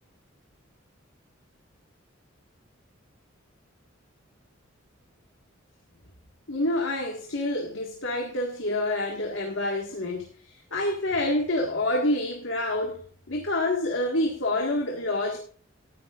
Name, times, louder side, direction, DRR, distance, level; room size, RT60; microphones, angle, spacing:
voice 1, 6.5-10.3 10.7-15.4, left 1 dB, 75° left, 1.9 m, -27 dB
17.0 x 11.5 x 2.5 m
head